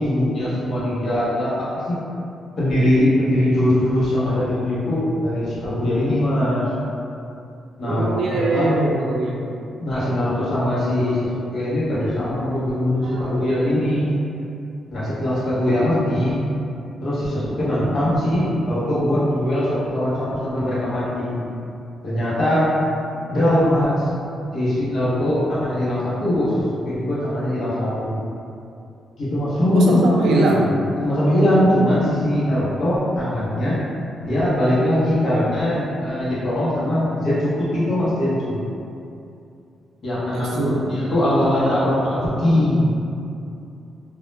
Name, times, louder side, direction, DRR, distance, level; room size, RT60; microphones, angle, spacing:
voice 1, 0.0-2.0 2.6-6.7 7.8-8.7 9.8-14.2 14.9-16.4 17.0-21.5 22.0-22.7 23.3-24.1 24.5-26.5 26.9-28.2 29.2-30.1 31.0-33.8 34.2-38.6 40.0-40.5 40.8-42.9, left 1 dB, 50° left, -9 dB, 0.8 m, -21 dB
voice 2, 7.8-9.4 13.0-13.3 29.7-30.7 40.3-41.0, right 2 dB, 85° right, -2 dB, 0.4 m, -22 dB
2.2 x 2.0 x 3.1 m, 2.6 s
cardioid pair, 130°, 0 cm